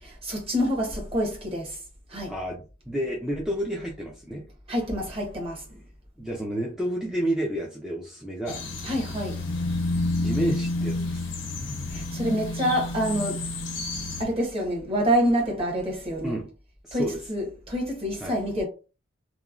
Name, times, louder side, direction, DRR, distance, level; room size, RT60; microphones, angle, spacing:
voice 1, 0.0-1.8 2.1-2.3 4.7-5.7 8.8-9.4 11.9-13.5 14.2-16.4 16.9-18.7, equal, 30° right, 1.0 m, -27 dB
voice 2, 2.3-2.6 2.9-4.5 6.2-8.6 10.2-11.3 16.2-16.5 16.8-17.2 18.2-18.4, right 1 dB, ahead, 0.4 m, -30 dB
sound 1, 8.5-14.2, left 2 dB, 85° left, 0.7 m, -30 dB
3.0 x 2.1 x 2.4 m
head